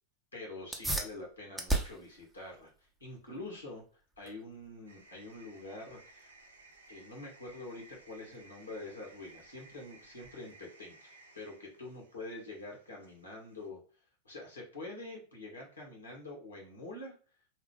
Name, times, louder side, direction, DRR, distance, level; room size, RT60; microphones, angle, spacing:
voice 1, 0.3-3.8 4.2-6.3 6.9-13.8 14.2-17.1, left 2 dB, 80° left, -1 dB, 1.3 m, -46 dB
sound 1, 0.6-10.7, right 2 dB, 5° right, 0.5 m, -41 dB
sound 2, 4.9-13.7, right 3 dB, 70° right, 0.5 m, -59 dB
3.1 x 2.0 x 3.1 m, 0.39 s
figure-of-eight pair, 90°, 0 cm